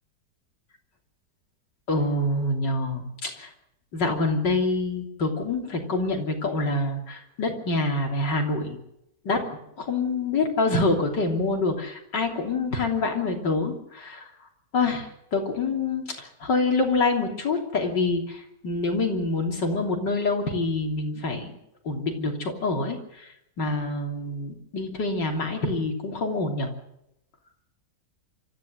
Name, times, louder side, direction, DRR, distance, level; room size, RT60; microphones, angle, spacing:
voice 1, 1.9-3.5 3.9-8.8 9.3-9.4 9.8-14.3 14.7-21.5 21.9-23.3 23.6-26.7, left 3 dB, 85° left, 2 dB, 3.7 m, -26 dB
26.0 x 14.0 x 7.8 m, 0.82 s
omnidirectional pair, 1.9 m